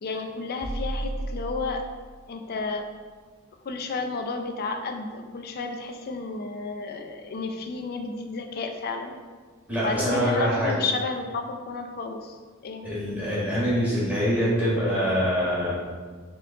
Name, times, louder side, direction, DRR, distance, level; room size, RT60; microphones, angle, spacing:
voice 1, 0.0-1.8 2.3-2.9 3.6-9.1 9.8-12.9, left 3 dB, 45° left, 5 dB, 0.4 m, -32 dB
sound 1, 0.6-2.4, right 1 dB, 25° left, 0.9 m, -33 dB
voice 2, 9.7-10.7 12.8-15.8, equal, 10° right, -8 dB, 1.3 m, -24 dB
4.4 x 3.6 x 2.7 m, 1.5 s
head